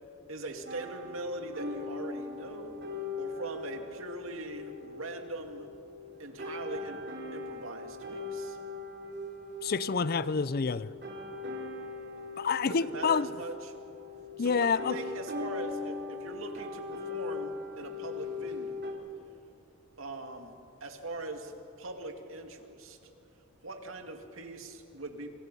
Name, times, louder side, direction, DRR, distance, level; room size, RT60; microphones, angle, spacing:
voice 1, 0.3-2.8 3.2-5.7 6.2-7.0 7.3-8.6 12.6-13.8 14.4-18.8 20.0-23.0 23.6-25.3, right 2 dB, 80° right, 2.3 m, -41 dB
sound 1, 0.7-18.9, left 3 dB, 55° right, 3.3 m, -40 dB
voice 2, 9.6-10.9 12.4-13.3 14.4-15.0, left 5 dB, 45° left, 0.5 m, -28 dB
28.5 x 25.5 x 5.5 m
head